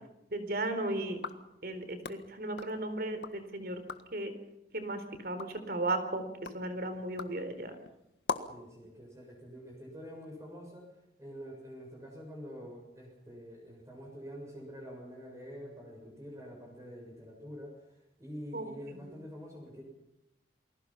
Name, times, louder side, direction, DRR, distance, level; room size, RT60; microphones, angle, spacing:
voice 1, 0.3-1.2 1.6-3.8 4.1-4.3 4.7-6.3 6.5-7.7 18.5-18.7, right 2 dB, 55° right, 9 dB, 4.0 m, -35 dB
sound 1, 1.1-3.4 3.7-4.2 4.7-8.7, left 4 dB, 80° left, 1.6 m, -43 dB
voice 2, 8.5-10.8 11.2-17.8 18.2-19.8, equal, 20° right, 0 dB, 6.8 m, -46 dB
29.0 x 21.0 x 5.7 m, 0.87 s
head